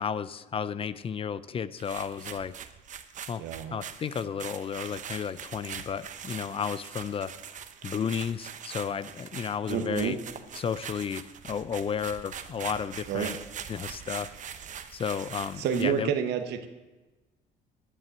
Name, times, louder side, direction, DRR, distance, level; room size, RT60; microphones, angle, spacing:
voice 1, 0.0-2.5 3.3-3.4 3.7-7.3 7.8-10.2 10.6-13.4 13.7-14.3 14.9-16.1, left 7 dB, 35° left, 16 dB, 0.5 m, -33 dB
sound 1, 1.8-16.0, right 8 dB, 45° right, 0.9 m, -42 dB
voice 2, 3.4-3.8 9.7-10.2 13.1-13.3 15.6-16.7, right 8 dB, 75° right, 6 dB, 1.0 m, -29 dB
11.0 x 7.5 x 7.9 m, 1.2 s
cardioid pair, 110°, 17 cm